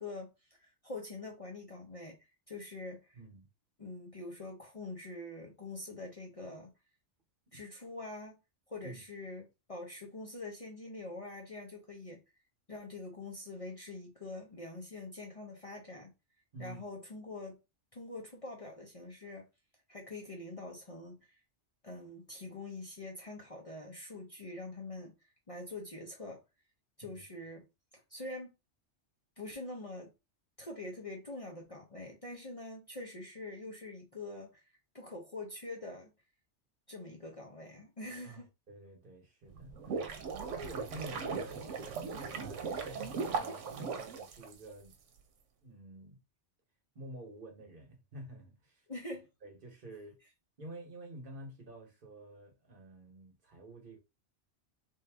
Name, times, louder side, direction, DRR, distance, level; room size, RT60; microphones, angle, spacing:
voice 1, 0.0-2.2 2.5-3.2 3.8-6.7 7.5-8.3 8.7-12.2 12.7-16.1 16.6-17.6 17.9-19.5 19.9-21.4 21.8-25.1 25.5-26.4 27.0-27.7 28.1-28.5 29.4-30.1 30.6-34.6 34.9-36.1 36.9-38.5 48.9-49.3, left 2 dB, 30° left, 0.9 m, -44 dB
voice 2, 3.1-3.5 7.5-7.6 8.8-9.0 16.5-16.8 27.0-27.2 38.2-44.9 45.6-46.2 46.9-48.8 49.4-50.2 50.6-54.0, right 2 dB, 50° right, 1.2 m, -50 dB
sound 1, 39.5-44.9, right 5 dB, 90° right, 1.0 m, -38 dB
3.6 x 2.7 x 3.4 m
omnidirectional pair, 1.2 m